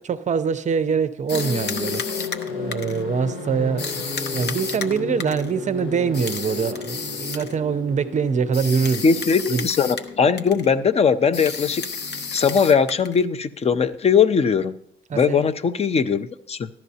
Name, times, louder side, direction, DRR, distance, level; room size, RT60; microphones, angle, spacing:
voice 1, 0.0-2.2 2.4-9.0 9.5-9.7 15.1-15.5, right 6 dB, 35° right, 0.5 m, -24 dB
sound 1, 1.3-13.0, left 4 dB, 80° left, 1.3 m, -34 dB
sound 2, 1.3-3.0 3.8-5.5 6.1-7.5 8.5-10.1 10.4-10.7 11.3-13.2, left 5 dB, 55° left, 0.9 m, -32 dB
voice 2, 9.0-11.8 12.3-14.7 15.1-16.7, left 6 dB, 30° left, 0.5 m, -20 dB
14.5 x 12.0 x 2.8 m
wide cardioid pair, 165°, 21 cm